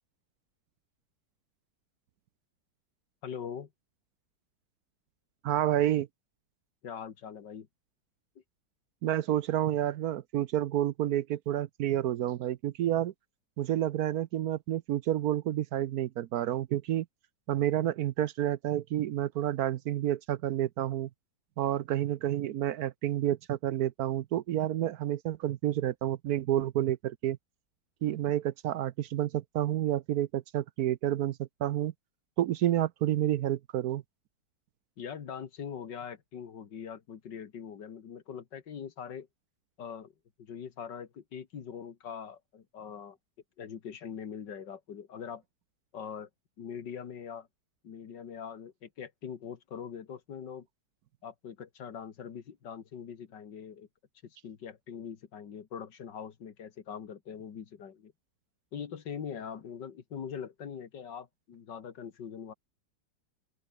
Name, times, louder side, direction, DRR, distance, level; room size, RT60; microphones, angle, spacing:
voice 1, 3.2-3.7 6.8-7.7 35.0-39.3 39.8-40.1 40.4-43.2 43.6-45.4 45.9-46.3 46.6-47.5 47.8-50.7 51.2-53.9 54.2-58.1 58.7-62.5, left 7 dB, 85° left, 2.3 m, -42 dB
voice 2, 5.4-6.1 9.0-13.1 13.6-17.1 17.5-21.1 21.6-27.4 28.0-31.9 32.4-34.0, right 12 dB, 65° right, 1.1 m, -29 dB
open air
omnidirectional pair, 1.9 m